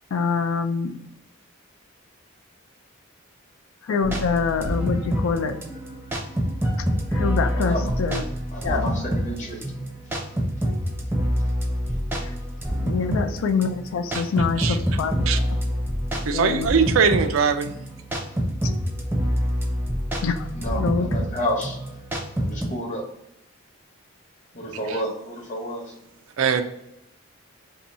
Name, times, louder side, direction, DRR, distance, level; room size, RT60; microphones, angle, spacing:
voice 1, 0.1-1.0 3.8-5.6 7.1-8.3 8.6-8.8 12.2-12.3 12.8-15.6 16.2-16.7 20.2-21.1, left 5 dB, 80° left, 7 dB, 0.4 m, -26 dB
sound 1, 4.0-22.7, equal, 10° right, 0.5 m, -27 dB
voice 2, 7.5-7.9 8.5-9.6 20.5-21.8 22.4-23.0 24.5-25.8, equal, 35° left, 0 dB, 0.8 m, -30 dB
voice 3, 16.3-17.7 24.9-25.0 26.4-26.6, right 6 dB, 80° right, 8 dB, 0.4 m, -21 dB
2.8 x 2.6 x 4.0 m, 0.84 s
head